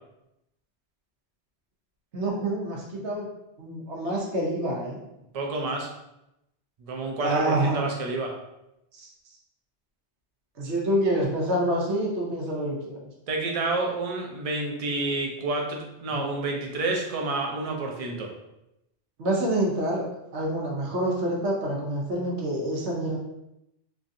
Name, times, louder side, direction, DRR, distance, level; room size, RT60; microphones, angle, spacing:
voice 1, 2.1-3.3 3.6-5.0 7.2-7.8 8.9-9.1 10.6-13.1 16.1-16.2 19.2-20.0 20.3-23.2, right 1 dB, 85° right, -2 dB, 1.0 m, -27 dB
voice 2, 5.3-5.9 6.8-8.3 13.3-18.3, right 2 dB, 50° right, 1 dB, 0.4 m, -29 dB
3.1 x 2.5 x 2.5 m, 0.87 s
omnidirectional pair, 1.1 m